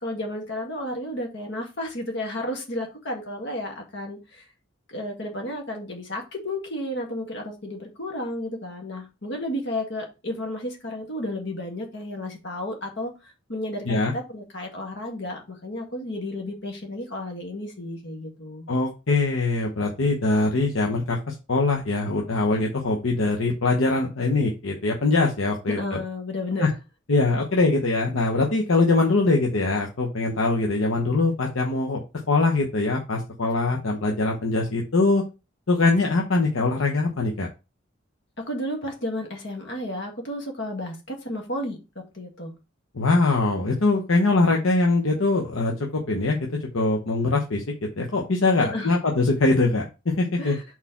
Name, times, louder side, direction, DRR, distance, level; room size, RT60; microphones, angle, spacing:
voice 1, 0.0-4.4 4.9-18.7 25.8-26.7 38.4-42.5 48.6-48.9 50.4-50.6, left 1 dB, 60° left, 2 dB, 1.7 m, -32 dB
voice 2, 18.7-26.0 26.6-26.7 27.1-32.0 32.3-35.2 35.7-37.5 42.9-46.4 46.7-50.6, left 3 dB, 75° left, 1 dB, 0.9 m, -22 dB
4.3 x 4.3 x 5.7 m, 0.29 s
head